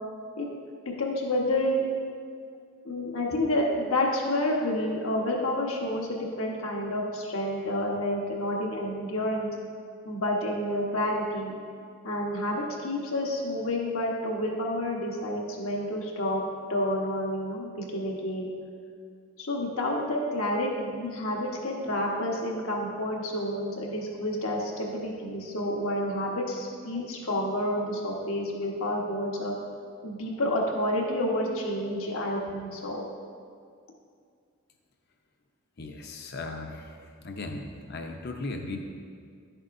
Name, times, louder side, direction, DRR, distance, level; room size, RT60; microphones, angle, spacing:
voice 1, 1.0-1.8 2.8-9.5 10.0-11.5 12.0-16.4 16.7-18.5 19.4-29.5 30.0-33.0, left 1 dB, 75° left, -1 dB, 1.3 m, -29 dB
voice 2, 35.8-37.0 37.2-38.8, left 2 dB, 45° left, 4 dB, 0.7 m, -37 dB
11.0 x 7.8 x 2.6 m, 2.2 s
head